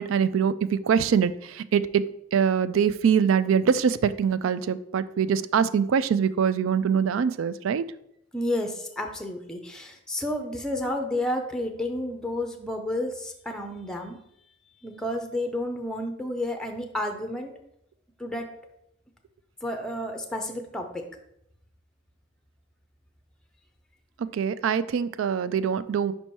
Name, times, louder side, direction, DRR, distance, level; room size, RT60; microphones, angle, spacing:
voice 1, 0.0-2.0 2.3-7.8 24.3-26.1, right 7 dB, 75° right, 15 dB, 0.3 m, -23 dB
voice 2, 8.3-14.2 14.8-17.5 18.2-18.5 19.6-21.0, left 1 dB, 5° left, 4 dB, 0.5 m, -31 dB
5.4 x 4.4 x 4.5 m, 0.77 s
head